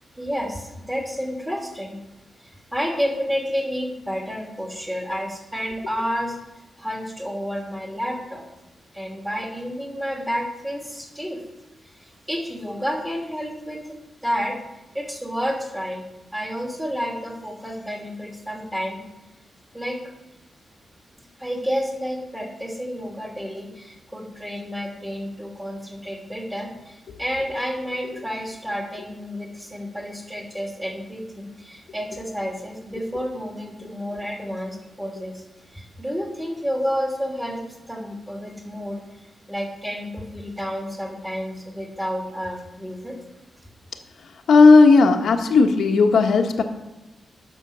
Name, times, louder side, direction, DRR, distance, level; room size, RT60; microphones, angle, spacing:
voice 1, 0.2-2.0 2.4-6.4 6.8-8.5 8.9-11.4 11.8-14.6 14.9-16.1 16.3-19.0 19.7-20.0 21.4-35.4 35.7-43.2, equal, 10° right, 0 dB, 2.9 m, -30 dB
voice 2, 44.5-46.6, left 4 dB, 85° left, 3 dB, 1.2 m, -14 dB
10.0 x 6.1 x 6.8 m, 1.0 s
wide cardioid pair, 100°, 0 cm